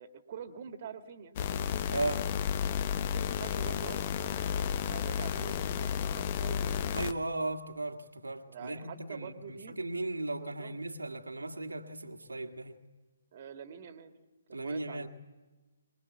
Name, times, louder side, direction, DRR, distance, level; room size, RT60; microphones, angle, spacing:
voice 1, 0.0-1.3 3.0-6.9 8.5-9.8 10.4-10.8 13.3-14.1 14.5-15.1, right 7 dB, 45° right, 1.8 m, -46 dB
sound 1, 1.4-7.1, left 8 dB, 35° left, 0.8 m, -32 dB
voice 2, 1.9-2.3 6.9-12.8 14.5-15.1, right 2 dB, 85° right, 1.7 m, -36 dB
24.0 x 20.0 x 8.3 m
figure-of-eight pair, 135°, 0 cm